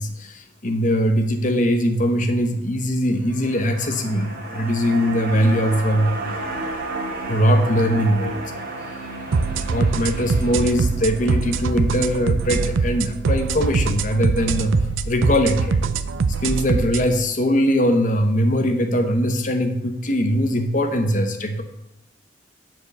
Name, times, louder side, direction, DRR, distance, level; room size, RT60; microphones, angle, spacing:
voice 1, 0.0-6.1 7.3-8.6 9.6-15.8 16.4-21.6, equal, 40° left, 7 dB, 1.0 m, -21 dB
sound 1, 3.2-13.6 13.9-14.0, right 2 dB, 50° right, 1.7 m, -33 dB
sound 2, 9.3-17.1, right 4 dB, 85° right, 0.5 m, -23 dB
9.6 x 4.6 x 6.7 m, 0.82 s
head